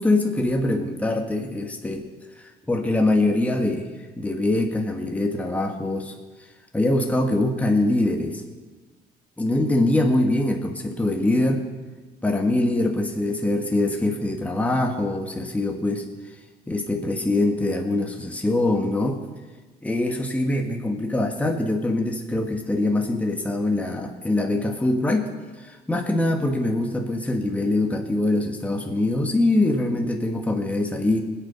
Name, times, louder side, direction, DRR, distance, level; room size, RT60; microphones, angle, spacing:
voice 1, 0.0-2.1 2.4-3.9 4.2-6.2 6.7-8.4 9.4-11.7 12.2-16.1 16.7-19.2 19.8-25.3 25.6-31.2, left 2 dB, 10° left, 2 dB, 1.5 m, -23 dB
20.5 x 8.6 x 5.7 m, 1.3 s
cardioid pair, 110°, 17 cm